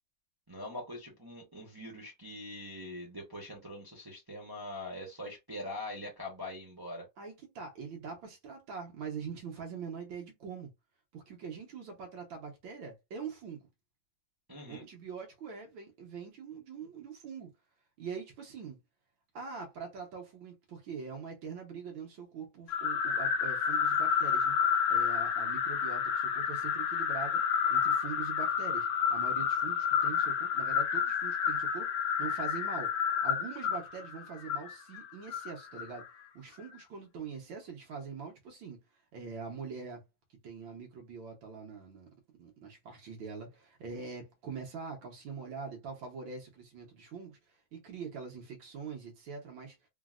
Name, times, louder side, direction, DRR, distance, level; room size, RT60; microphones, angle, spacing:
voice 1, 0.5-7.1 14.5-14.9, left 1 dB, 25° right, 0.4 m, -43 dB
voice 2, 7.2-10.7 11.1-13.6 14.7-17.5 18.0-18.8 19.3-24.6 24.9-27.4 27.7-31.9 32.2-32.9 33.2-36.1 36.3-38.8 39.1-40.0 40.4-42.1 42.4-47.4 47.7-49.8, right 5 dB, 80° right, 1.7 m, -43 dB
sound 1, 22.7-36.1, left 7 dB, 75° left, 0.8 m, -30 dB
3.8 x 2.0 x 2.4 m
omnidirectional pair, 2.1 m